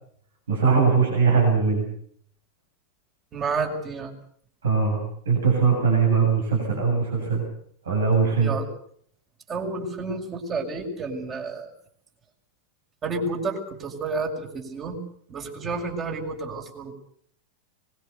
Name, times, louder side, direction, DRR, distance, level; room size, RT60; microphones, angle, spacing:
voice 1, 0.5-1.9 4.6-5.0 5.3-7.4 7.9-8.5, right 5 dB, 65° right, 1 dB, 7.8 m, -21 dB
voice 2, 3.3-4.1 8.4-8.7 9.5-11.7 13.0-15.0 15.3-16.9, right 3 dB, 25° right, 2 dB, 6.6 m, -30 dB
24.5 x 22.0 x 6.9 m, 0.63 s
figure-of-eight pair, 90°, 0 cm